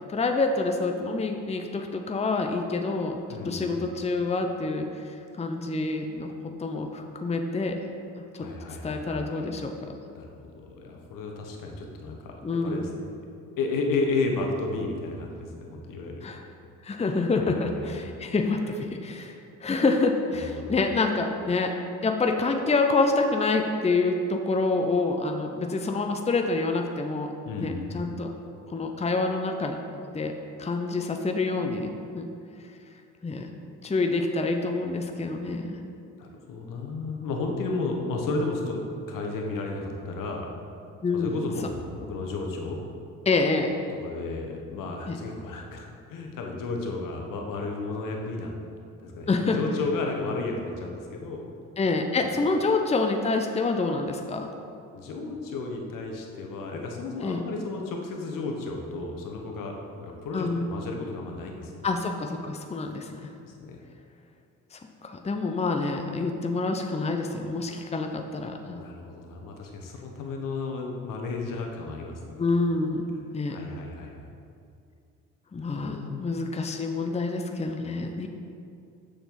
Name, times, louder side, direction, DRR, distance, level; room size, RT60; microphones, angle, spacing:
voice 1, 0.1-3.2 3.4-6.3 6.6-7.8 8.4-8.5 8.8-9.7 12.4-12.9 16.2-16.4 16.8-21.7 22.0-27.3 27.6-28.3 28.7-29.8 30.1-30.3 30.6-32.3 33.2-33.5 33.8-35.8 41.0-41.3 43.3-43.7 45.1-45.2 49.3-49.6 51.8-54.5 57.2-57.4 60.3-60.6 61.8-63.3 64.7-68.8 72.4-73.6 75.5-78.3, left 3 dB, 20° left, 4 dB, 0.7 m, -27 dB
voice 2, 3.3-3.8 8.3-9.5 10.1-12.4 12.6-13.0 13.6-16.3 17.4-18.1 20.3-20.7 27.4-27.9 36.2-40.5 41.1-42.8 43.9-48.5 49.0-51.5 54.9-61.8 63.4-63.8 68.6-72.4 73.5-74.2 75.7-76.4, left 3 dB, 65° left, 1 dB, 1.3 m, -33 dB
6.7 x 6.6 x 3.9 m, 2.5 s
hypercardioid pair, 60°, 36 cm